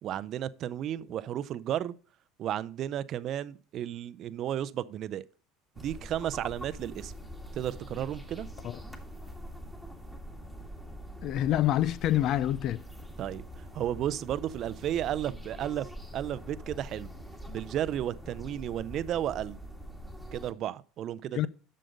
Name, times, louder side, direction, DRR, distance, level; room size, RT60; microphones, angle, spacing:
voice 1, 0.0-2.0 2.4-5.2 5.8-7.1 7.5-8.5 13.2-15.9 16.1-17.1 17.5-19.6 20.3-21.5, right 11 dB, 50° right, 0.5 m, -33 dB
sound 1, 5.7-20.5, equal, 5° left, 1.8 m, -44 dB
voice 2, 11.2-12.8 21.3-21.5, left 13 dB, 55° left, 0.5 m, -27 dB
7.8 x 6.5 x 5.2 m
supercardioid pair, 95°, 0 cm